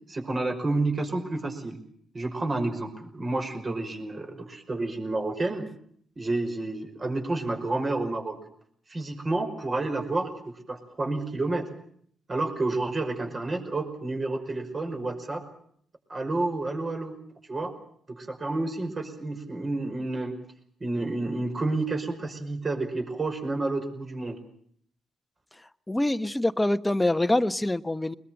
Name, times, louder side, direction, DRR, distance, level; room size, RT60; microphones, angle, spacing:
voice 1, 0.1-1.8 2.1-5.7 6.2-8.4 8.9-11.7 12.3-15.4 16.1-17.2 17.5-17.8 18.1-20.3 20.8-24.4, right 2 dB, 40° right, 4 dB, 5.5 m, -30 dB
voice 2, 25.9-28.1, left 1 dB, 15° left, 10 dB, 1.2 m, -25 dB
22.5 x 21.0 x 7.8 m, 0.63 s
hypercardioid pair, 45°, 0 cm